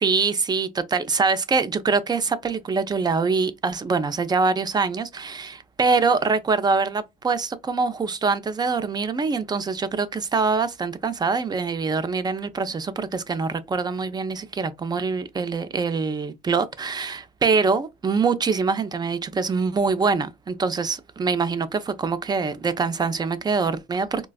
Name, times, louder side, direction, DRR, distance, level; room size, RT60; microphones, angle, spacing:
voice 1, 0.0-24.3, right 4 dB, 25° right, 0.5 m, -24 dB
4.1 x 2.3 x 2.2 m
cardioid pair, 110°, 17 cm